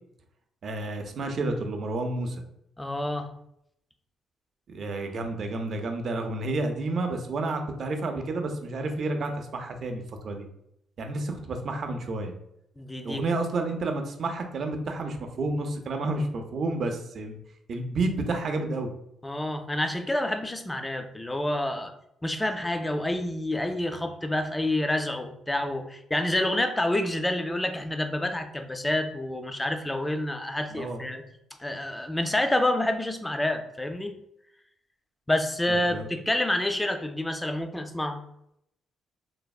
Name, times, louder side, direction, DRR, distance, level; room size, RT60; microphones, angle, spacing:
voice 1, 0.6-2.3 4.7-10.4 11.0-12.3 13.0-17.4 17.7-18.9 30.7-31.0 35.7-36.1, right 2 dB, 55° right, 5 dB, 0.4 m, -30 dB
voice 2, 2.8-3.3 12.8-13.2 19.2-21.9 22.2-31.2 31.6-34.1 35.3-38.2, left 1 dB, 10° left, 6 dB, 0.3 m, -28 dB
3.2 x 2.0 x 2.3 m, 0.77 s
cardioid pair, 90°, 0 cm